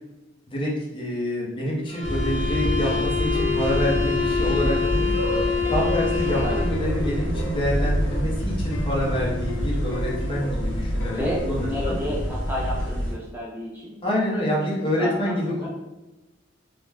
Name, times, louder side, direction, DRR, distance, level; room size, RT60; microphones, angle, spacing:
voice 1, 0.5-5.1 5.7-12.0 14.0-15.7, equal, 25° left, -3 dB, 0.6 m, -27 dB
sound 1, 1.9-6.8, left 6 dB, 45° left, 1.0 m, -26 dB
sound 2, 2.0-13.1, equal, 65° right, 1.1 m, -27 dB
sound 3, 2.4-12.9, left 2 dB, 80° left, 0.3 m, -37 dB
voice 2, 11.1-14.0 14.8-15.7, equal, 10° right, -5 dB, 0.4 m, -31 dB
2.4 x 2.1 x 3.2 m, 1.1 s
head